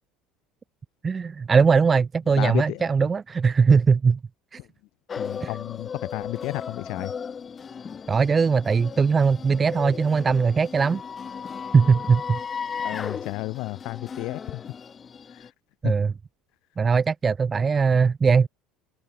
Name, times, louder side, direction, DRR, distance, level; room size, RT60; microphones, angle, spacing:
voice 1, 1.0-4.2 4.5-4.6 5.4-5.5 8.1-11.0 11.7-12.4 15.8-16.1 16.8-18.5, right 5 dB, 30° right, 0.4 m, -20 dB
voice 2, 2.4-2.9 5.2-7.1 12.8-14.6 15.3-15.5 15.8-15.9, left 22 dB, 65° left, 0.4 m, -32 dB
sound 1, 5.1-15.5, left 6 dB, 35° left, 1.6 m, -36 dB
hypercardioid pair, 70°, 0 cm